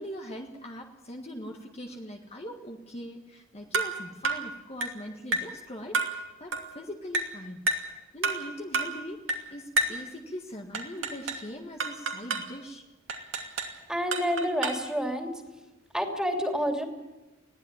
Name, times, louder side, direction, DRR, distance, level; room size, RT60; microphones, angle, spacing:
voice 1, 0.0-7.6 8.1-12.8, equal, 30° left, 2 dB, 1.7 m, -41 dB
sound 1, 3.7-4.0 4.2-4.5 4.8-5.0 5.3-5.6 5.9-6.2 6.5-6.7 7.1-7.4 7.7-7.9 8.2-8.5 8.7-9.0 9.3-9.5 9.8-10.0 10.7-11.5 11.8-12.5 13.1-13.8 14.1-14.9, right 3 dB, 75° right, 2.6 m, -30 dB
voice 2, 13.9-15.3 15.9-16.8, equal, 5° right, 2 dB, 3.0 m, -28 dB
21.0 x 15.5 x 8.8 m, 1.1 s
head